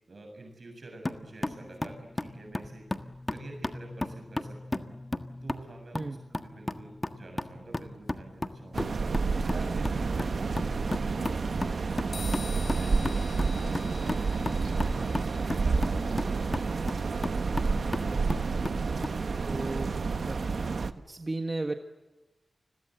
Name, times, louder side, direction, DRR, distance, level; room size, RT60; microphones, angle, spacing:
voice 1, 0.1-5.0 5.4-11.4 11.8-13.0 14.6-17.3 17.5-17.7, right 2 dB, 55° right, 3 dB, 7.3 m, -48 dB
sound 1, 1.0-19.2, left 2 dB, 25° left, 1.5 m, -36 dB
sound 2, 8.7-20.9, right 4 dB, 75° right, 1.3 m, -29 dB
sound 3, 12.1-19.8, left 4 dB, 65° left, 3.2 m, -49 dB
voice 2, 18.1-18.5 19.4-20.0 20.2-20.4 21.1-21.7, right 2 dB, 30° right, 6 dB, 1.5 m, -34 dB
29.5 x 21.5 x 7.9 m, 1.2 s
wide cardioid pair, 105°, 0 cm